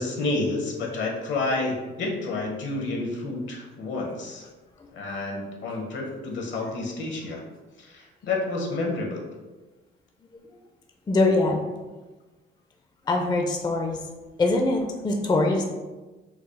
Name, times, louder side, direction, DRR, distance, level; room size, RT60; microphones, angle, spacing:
voice 1, 0.0-4.5 4.9-7.4 7.8-9.2, left 2 dB, 70° left, 0 dB, 0.9 m, -29 dB
voice 2, 11.1-11.6 13.1-14.1 14.4-15.6, left 2 dB, 20° left, 2 dB, 0.4 m, -23 dB
4.7 x 2.0 x 3.1 m, 1.2 s
cardioid pair, 90°, 20 cm